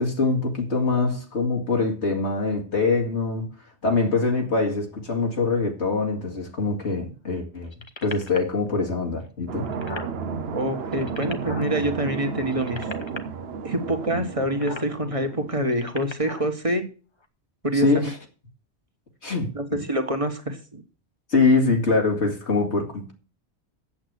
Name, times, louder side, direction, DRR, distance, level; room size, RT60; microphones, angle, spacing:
voice 1, 0.0-3.5 3.8-7.7 8.0-9.7 17.7-18.2 19.2-19.8 21.3-23.1, left 3 dB, 85° left, 2.6 m, -23 dB
sound 1, 7.7-8.5 9.2-9.3 9.5-10.1 10.8-11.7 12.4-13.2 14.5-14.9 15.6-16.5 17.2-17.3, left 3 dB, 25° left, 1.0 m, -37 dB
sound 2, 9.5-15.9, right 5 dB, 65° right, 1.0 m, -33 dB
voice 2, 10.5-12.9 13.6-16.8 17.6-18.0 19.5-20.8, right 1 dB, 30° right, 1.6 m, -26 dB
8.6 x 7.8 x 8.0 m
omnidirectional pair, 1.1 m